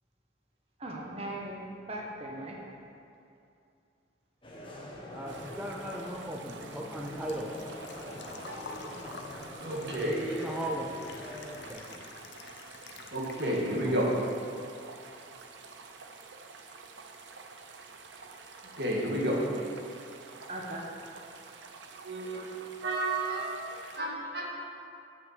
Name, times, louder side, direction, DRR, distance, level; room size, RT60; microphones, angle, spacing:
voice 1, 0.8-2.6 20.5-20.9, right 1 dB, 35° right, -1 dB, 1.1 m, -39 dB
sound 1, 4.4-11.7, left 1 dB, 30° left, 1.2 m, -44 dB
voice 2, 5.1-7.5 10.1-10.9 11.7-12.0 13.4-13.9, right 1 dB, 5° right, -1 dB, 0.5 m, -38 dB
sound 2, 5.3-24.0, right 4 dB, 85° right, 0.7 m, -49 dB
Engine / Trickle dribble / Fill (with liquid), 6.1-14.1 14.4-15.4 15.7-15.8 17.7-17.8 17.9-18.3 18.7-18.8 19.0-19.1, left 4 dB, 70° left, 0.7 m, -49 dB
voice 3, 9.6-10.6 13.1-14.1 18.8-19.4 22.0-22.5 22.8-24.5, right 1 dB, 65° right, -3 dB, 1.8 m, -31 dB
7.3 x 6.5 x 7.3 m, 2.5 s
head